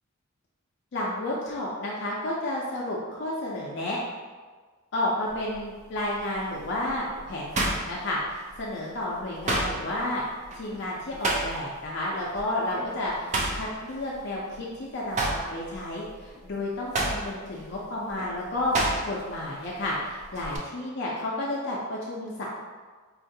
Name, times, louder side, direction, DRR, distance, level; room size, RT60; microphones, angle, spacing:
voice 1, 0.9-4.0 4.9-8.2 8.6-10.2 10.5-18.7 19.0-22.4, left 1 dB, 55° left, -5 dB, 0.4 m, -31 dB
sound 1, 5.3-5.6 6.2-8.7 9.0-11.9 12.2-12.4 12.8-14.7 15.0-19.4 19.6-20.6, right 2 dB, 35° right, 0.4 m, -30 dB
4.3 x 2.4 x 2.7 m, 1.4 s
head